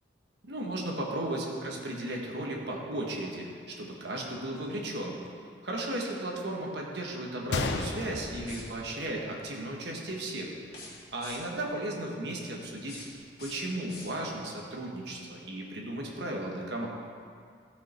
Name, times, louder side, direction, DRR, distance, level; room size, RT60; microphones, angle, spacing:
voice 1, 0.4-5.2 5.6-10.5 11.1-13.0 13.4-16.9, right 1 dB, 70° right, -1 dB, 1.4 m, -35 dB
Gunshot gunfire, 7.5-9.5 9.8-9.9 10.6-10.8, left 3 dB, 75° left, 0.6 m, -34 dB
sound 1, 8.4-9.0 10.6-11.7 12.6-14.5, left 2 dB, 60° left, 2.1 m, -48 dB
14.0 x 5.7 x 4.4 m, 2.2 s
head